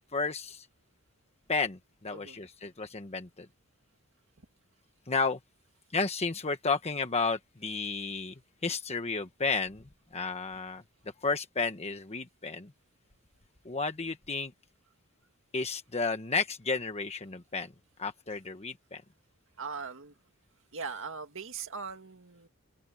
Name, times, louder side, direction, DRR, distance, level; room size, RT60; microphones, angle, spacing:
voice 1, 0.1-0.7 1.5-3.5 5.1-5.4 5.9-9.8 10.1-10.8 11.2-12.7 13.6-14.5 15.5-17.7 18.0-19.0, left 4 dB, 30° left, 1.2 m, -32 dB
voice 2, 19.6-20.1 20.7-22.5, right 5 dB, 65° right, 2.1 m, -40 dB
open air
head